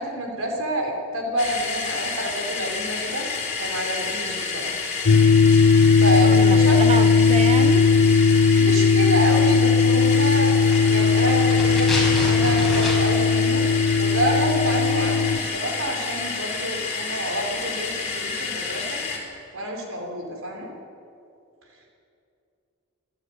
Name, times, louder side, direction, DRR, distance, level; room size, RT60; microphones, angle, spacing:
voice 1, 0.0-3.3 3.6-4.8 5.9-6.8 8.6-13.7 14.0-19.0 19.5-20.7, right 1 dB, 75° right, 1 dB, 4.8 m, -28 dB
sound 1, 1.4-19.2, left 4 dB, 35° left, 4.2 m, -30 dB
sound 2, 5.1-15.4, left 5 dB, 85° left, 0.7 m, -18 dB
voice 2, 6.2-7.9, right 2 dB, 30° right, 9 dB, 1.2 m, -28 dB
sound 3, 10.5-13.3 13.6-13.7, left 1 dB, ahead, 5.8 m, -30 dB
27.5 x 12.0 x 9.9 m, 2.6 s
head